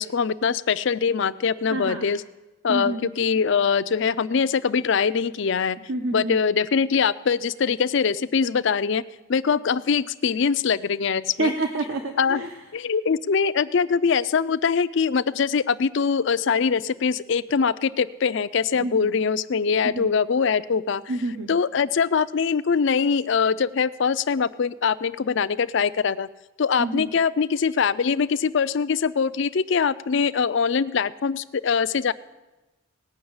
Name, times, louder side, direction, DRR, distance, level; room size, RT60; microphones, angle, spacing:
voice 1, 0.0-2.2 2.6-5.8 6.1-9.0 9.3-11.5 12.2-12.4 12.7-21.0 21.5-26.3 26.6-32.1, left 6 dB, 55° left, 16 dB, 0.4 m, -23 dB
voice 2, 1.7-2.1 2.7-3.1 5.9-6.4 11.4-12.5 18.7-19.1 19.8-20.1 21.1-21.5 26.8-27.1, right 2 dB, 70° right, 5 dB, 0.9 m, -28 dB
18.5 x 6.3 x 8.7 m, 1.1 s
head